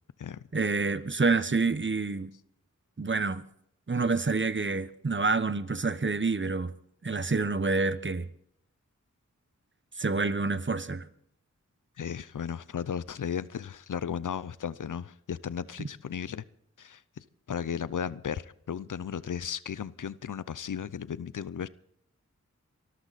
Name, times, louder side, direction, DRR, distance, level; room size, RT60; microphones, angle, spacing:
voice 1, 0.5-2.3 3.0-3.4 3.9-6.7 7.0-8.3 10.0-11.1, right 3 dB, 40° right, 1.1 m, -27 dB
voice 2, 12.0-16.4 16.8-21.7, left 8 dB, 80° left, 0.6 m, -35 dB
24.5 x 13.5 x 4.2 m
cardioid pair, 45°, 31 cm